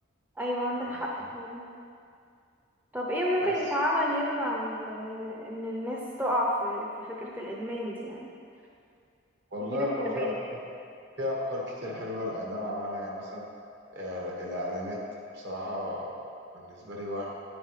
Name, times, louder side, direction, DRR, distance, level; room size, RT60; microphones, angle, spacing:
voice 1, 0.4-1.7 2.9-8.3 9.7-10.4, equal, 10° right, -3 dB, 0.7 m, -30 dB
voice 2, 9.5-10.6 11.2-13.4 13.9-15.0 15.3-16.2 16.5-17.3, left 1 dB, 55° right, -3 dB, 1.7 m, -34 dB
9.7 x 9.4 x 3.2 m, 2.4 s
head